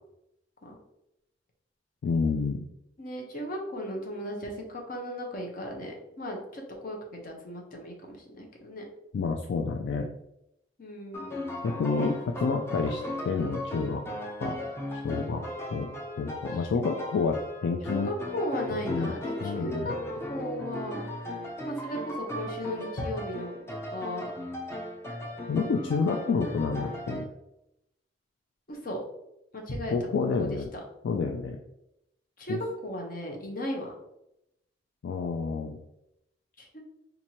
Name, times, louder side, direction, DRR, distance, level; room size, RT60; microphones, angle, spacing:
voice 1, 2.0-2.6 9.1-10.1 11.6-14.0 14.4-14.6 15.0-15.4 15.7-15.9 16.2-18.1 18.9-19.1 19.4-19.9 25.5-27.2 29.9-30.7 31.0-31.6 32.5-32.6 35.0-35.8, left 4 dB, 75° left, 3 dB, 0.3 m, -29 dB
voice 2, 3.0-8.8 10.8-11.3 17.8-20.0 20.3-21.0 21.7-23.5 23.9-24.3 28.7-29.0 29.5-30.5 32.4-33.9 36.6-36.8, equal, 50° left, 1 dB, 0.8 m, -36 dB
sound 1, 11.1-27.2, left 1 dB, 15° left, 0.6 m, -37 dB
4.3 x 2.6 x 2.9 m, 0.84 s
head